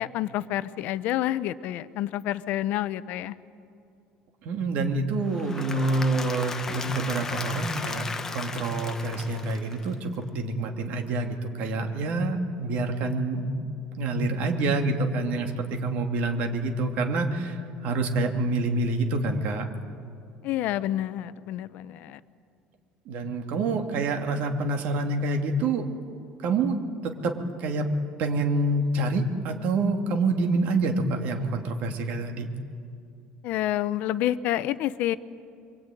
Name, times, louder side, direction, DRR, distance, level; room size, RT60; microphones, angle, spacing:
voice 1, 0.0-3.4 20.4-22.2 33.4-35.2, left 13 dB, 55° left, 15 dB, 0.8 m, -28 dB
voice 2, 4.4-13.6 14.0-19.7 23.1-25.9 26.4-26.8 27.0-27.9 28.2-32.5, right 2 dB, 55° right, 4 dB, 2.6 m, -27 dB
Applause / Crowd, 5.2-10.2, left 4 dB, 15° left, 1.0 m, -36 dB
27.5 x 23.5 x 9.2 m, 2.6 s
cardioid pair, 165°, 3 cm